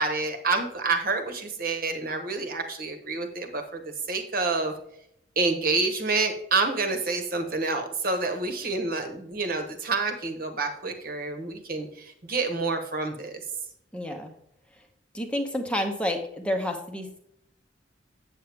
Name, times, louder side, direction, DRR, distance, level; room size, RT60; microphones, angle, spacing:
voice 1, 0.0-3.8 4.1-4.7 5.4-13.4, right 3 dB, 50° right, 5 dB, 1.3 m, -28 dB
voice 2, 13.9-14.3 15.1-17.2, left 1 dB, 5° left, 3 dB, 0.9 m, -29 dB
8.3 x 7.8 x 3.5 m, 0.73 s
head